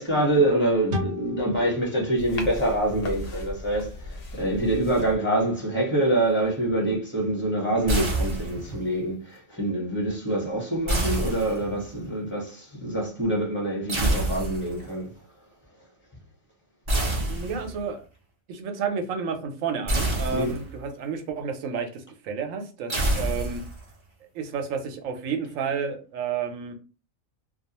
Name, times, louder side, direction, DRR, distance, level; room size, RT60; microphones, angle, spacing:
voice 1, 0.0-15.1 20.3-20.6, right 1 dB, 10° left, 0.9 m, -25 dB
sound 1, 0.9-4.3, left 2 dB, 55° right, 0.8 m, -36 dB
sound 2, 2.2-5.2, left 2 dB, 70° left, 0.3 m, -37 dB
sound 3, 7.9-8.8 10.9-12.0 13.9-14.9 16.9-17.9 19.9-20.9 22.9-23.9, right 1 dB, 40° right, 0.4 m, -27 dB
voice 2, 17.3-18.0 18.5-23.6 24.3-26.7, right 6 dB, 80° right, 1.0 m, -31 dB
2.3 x 2.3 x 2.9 m
omnidirectional pair, 1.4 m